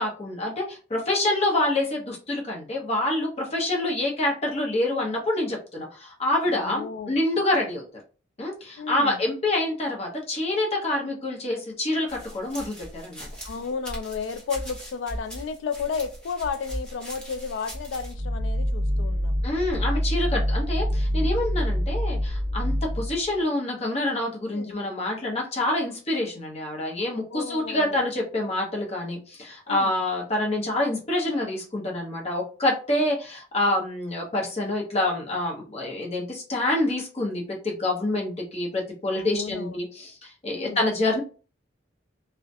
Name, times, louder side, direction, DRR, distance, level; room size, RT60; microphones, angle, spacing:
voice 1, 0.0-7.8 8.4-13.3 19.4-41.2, left 1 dB, 35° left, 0.8 m, -27 dB
voice 2, 6.5-7.2 8.8-9.2 13.4-19.4 20.3-20.4 24.5-24.8 27.3-28.0 29.7-30.0 39.1-39.8 40.5-40.8, left 5 dB, 75° left, 0.3 m, -33 dB
sound 1, 12.1-18.1, equal, 5° left, 0.8 m, -39 dB
sound 2, 17.9-23.3, equal, 75° right, 0.5 m, -26 dB
2.3 x 2.1 x 2.6 m
head